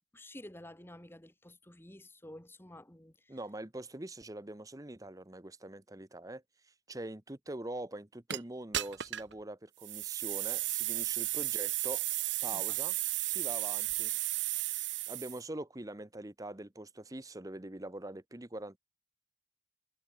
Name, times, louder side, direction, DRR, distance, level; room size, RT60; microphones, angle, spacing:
voice 1, 0.1-3.4 12.5-12.8, left 1 dB, 10° left, 1.7 m, -51 dB
voice 2, 3.3-12.0 12.4-13.0 13.2-14.1 14.7-18.8, right 1 dB, 20° right, 0.9 m, -44 dB
sound 1, 8.3-8.4 8.7-9.3 9.8-15.4, right 16 dB, 70° right, 1.3 m, -34 dB
head